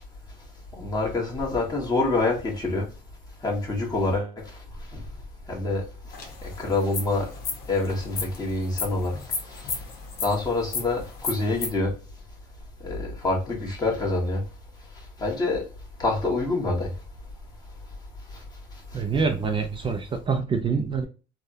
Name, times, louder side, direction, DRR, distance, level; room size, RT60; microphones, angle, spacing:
voice 1, 0.7-2.9 3.4-4.4 4.9-5.0 5.5-5.8 6.4-7.3 7.7-9.2 9.5-9.7 10.2-11.9 12.8-14.4 15.2-15.7 16.0-16.9, left 2 dB, 25° left, 1.4 m, -26 dB
sound 1, 6.1-11.7, left 4 dB, 65° left, 1.1 m, -35 dB
voice 2, 18.9-21.1, right 5 dB, 30° right, 0.4 m, -26 dB
3.4 x 2.3 x 2.7 m
cardioid pair, 110°, 17 cm